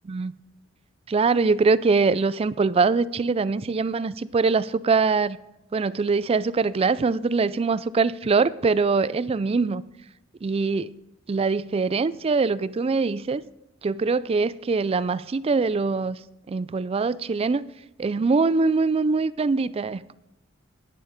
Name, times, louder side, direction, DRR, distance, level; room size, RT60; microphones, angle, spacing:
voice 1, 1.1-5.4 5.7-9.8 10.4-10.9 11.3-13.4 13.8-16.2 16.5-17.7 18.0-20.1, right 4 dB, 30° right, 0.3 m, -23 dB
11.0 x 8.8 x 5.1 m
head